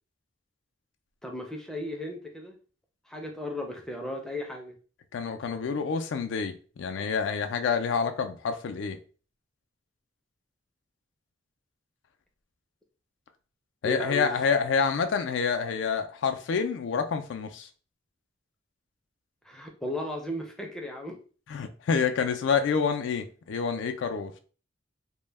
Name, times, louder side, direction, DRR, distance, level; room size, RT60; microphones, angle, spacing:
voice 1, 1.2-2.6 3.1-4.7 13.8-14.3 19.5-21.2, left 1 dB, 5° left, 0.4 m, -35 dB
voice 2, 5.1-9.0 13.8-17.7 21.5-24.3, left 6 dB, 75° left, 0.3 m, -28 dB
2.1 x 2.0 x 3.2 m
head